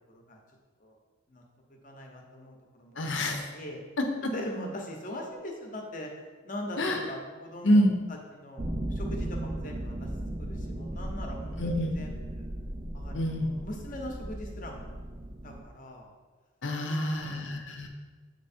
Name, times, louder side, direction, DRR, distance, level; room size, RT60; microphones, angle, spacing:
voice 1, 0.1-0.4 0.8-1.0 1.3-1.4 1.7-3.1 3.5-3.8 4.3-6.1 6.4-7.8 8.3-10.1 10.4-12.5 12.9-15.0 15.4-16.1 16.8-17.6, equal, 45° left, 1 dB, 0.9 m, -41 dB
voice 2, 3.0-3.5 4.0-4.3 6.8-7.1 7.6-7.9 11.6-12.0 13.1-13.6 16.6-17.9, equal, 75° left, 3 dB, 0.8 m, -27 dB
sound 1, 8.6-15.6, right 1 dB, 25° right, 0.4 m, -36 dB
7.6 x 3.1 x 4.3 m, 1.4 s
head